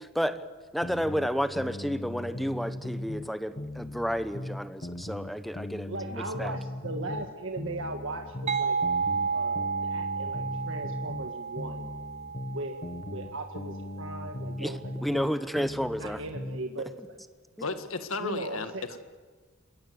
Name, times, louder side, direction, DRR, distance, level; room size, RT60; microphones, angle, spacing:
voice 1, 0.7-6.6 14.6-16.2, equal, ahead, 11 dB, 1.0 m, -31 dB
sound 1, 0.8-3.3 3.6-7.3 7.6-11.3 11.6-15.3 15.6-16.6, left 1 dB, 40° left, 1.4 m, -38 dB
voice 2, 5.9-8.8 9.3-11.9 12.5-12.8 13.1-14.8 15.1-15.7 16.0-17.2 18.2-18.8, right 2 dB, 65° right, 4 dB, 1.7 m, -38 dB
sound 2, 8.5-13.9, right 5 dB, 35° right, 1.1 m, -32 dB
voice 3, 17.6-19.0, left 3 dB, 85° left, 9 dB, 1.7 m, -34 dB
27.5 x 21.5 x 8.0 m, 1.4 s
head